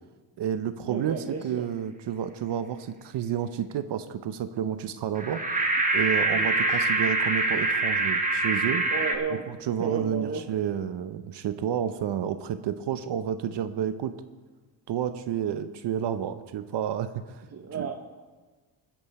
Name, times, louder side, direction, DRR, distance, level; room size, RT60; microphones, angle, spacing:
voice 1, 0.4-5.4 5.9-8.9 9.3-14.1 14.9-17.4 17.7-17.9, right 9 dB, 60° right, 11 dB, 0.8 m, -30 dB
voice 2, 0.9-1.7 6.3-6.8 8.9-9.5 9.8-10.5 17.5-17.9, right 5 dB, 30° right, 5 dB, 1.0 m, -33 dB
sound 1, 5.2-9.2, right 2 dB, 15° right, 1.4 m, -25 dB
21.0 x 7.9 x 4.2 m, 1.3 s
cardioid pair, 100°, 48 cm